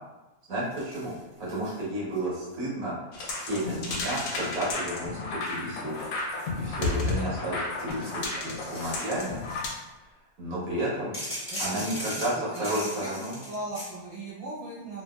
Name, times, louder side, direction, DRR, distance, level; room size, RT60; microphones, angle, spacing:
voice 1, 0.5-1.1 1.4-2.9 3.2-6.1 6.5-9.4 10.4-11.1 11.6-13.4, right 1 dB, 75° right, -8 dB, 1.5 m, -32 dB
sound 1, 0.7-1.8 2.1-2.5 3.2-4.8 5.4-7.2 7.6-9.8 11.1-13.9, equal, 10° left, 1.1 m, -40 dB
sound 2, 3.1-9.7, left 3 dB, 70° left, 0.9 m, -32 dB
voice 2, 11.5-12.0 12.5-12.7 13.0-13.1 13.4-15.0, right 1 dB, 20° right, -11 dB, 1.2 m, -38 dB
2.8 x 2.6 x 2.3 m, 1.1 s
omnidirectional pair, 1.5 m